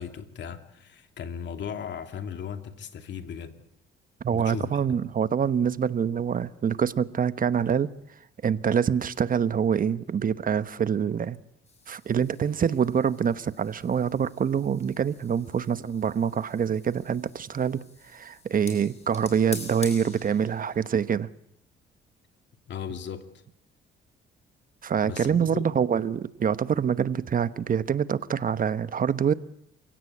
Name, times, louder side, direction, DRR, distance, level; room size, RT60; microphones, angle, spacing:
voice 1, 0.0-3.6 4.3-5.0 22.7-23.3 25.0-25.6, left 7 dB, 65° left, 7 dB, 2.6 m, -37 dB
voice 2, 4.2-7.9 8.4-11.4 11.9-17.8 18.1-21.3 24.8-29.3, right 7 dB, 45° right, 14 dB, 1.1 m, -25 dB
sound 1, 11.7-21.0, left 3 dB, 35° left, 6.8 m, -46 dB
28.0 x 17.0 x 8.5 m, 0.76 s
cardioid pair, 90°, 20 cm